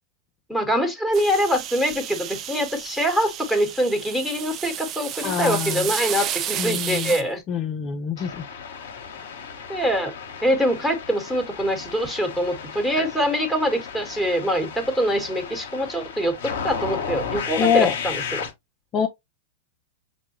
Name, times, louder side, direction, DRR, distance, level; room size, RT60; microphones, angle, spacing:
voice 1, 0.5-7.4 9.7-10.1 10.4-18.1, equal, ahead, 1.4 m, -24 dB
sound 1, 1.1-7.2, right 11 dB, 35° right, 0.4 m, -31 dB
voice 2, 5.2-5.9 6.5-7.2 7.5-8.4 13.0-13.1 17.5-18.0 18.9-19.1, left 8 dB, 35° left, 0.5 m, -24 dB
sound 2, 8.2-18.5, left 6 dB, 65° left, 1.0 m, -34 dB
6.0 x 2.2 x 2.9 m
hypercardioid pair, 110°, 0 cm